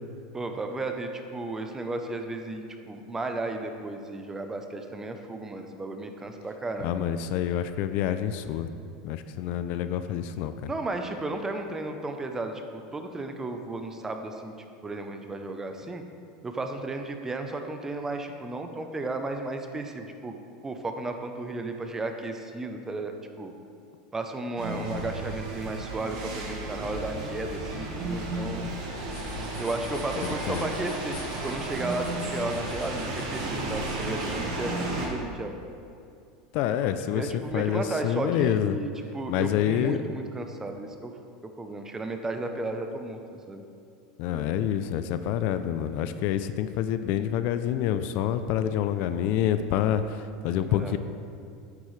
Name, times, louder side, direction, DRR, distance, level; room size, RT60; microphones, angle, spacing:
voice 1, 0.3-6.9 10.7-14.5 14.8-16.0 16.4-20.3 20.6-23.5 24.1-28.7 29.6-35.6 37.1-41.1 41.6-43.2 43.5-43.6 50.7-50.9, right 2 dB, 15° right, 5 dB, 0.6 m, -34 dB
voice 2, 6.8-8.7 9.0-10.7 30.5-30.7 36.5-38.8 39.3-40.0 44.2-51.0, left 10 dB, 55° left, 11 dB, 0.4 m, -27 dB
sound 1, 24.6-35.1, right 2 dB, 90° right, 1.9 m, -33 dB
sound 2, 28.8-34.4, left 2 dB, 80° left, 2.1 m, -47 dB
8.5 x 8.4 x 3.2 m, 2.4 s
supercardioid pair, 135°, 3 cm